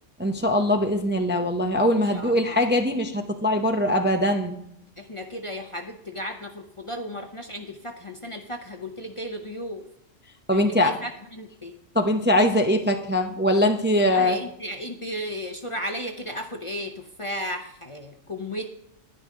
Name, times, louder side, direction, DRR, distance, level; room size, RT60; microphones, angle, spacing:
voice 1, 0.2-4.6 10.5-10.9 11.9-14.4, left 1 dB, 10° right, 4 dB, 0.6 m, -22 dB
voice 2, 2.1-2.6 5.0-9.8 10.5-11.8 14.1-18.7, equal, 30° left, 3 dB, 0.7 m, -34 dB
10.5 x 10.5 x 3.8 m, 0.77 s
omnidirectional pair, 1.3 m